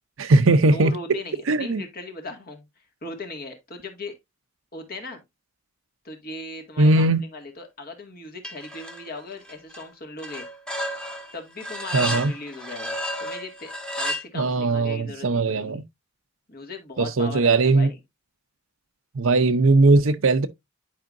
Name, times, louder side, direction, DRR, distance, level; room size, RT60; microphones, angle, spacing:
voice 1, 0.2-0.9 1.5-1.8 6.8-7.2 11.9-12.3 14.3-15.8 17.0-17.9 19.1-20.5, right 3 dB, 70° right, 0.7 m, -19 dB
voice 2, 0.7-4.2 4.7-5.2 6.0-10.5 11.3-13.7 14.0-15.8 16.5-18.0, left 3 dB, 45° left, 2.0 m, -38 dB
sound 1, 8.4-9.0 9.3-9.8 10.2-14.2, equal, 5° left, 1.3 m, -32 dB
10.5 x 4.9 x 2.6 m
head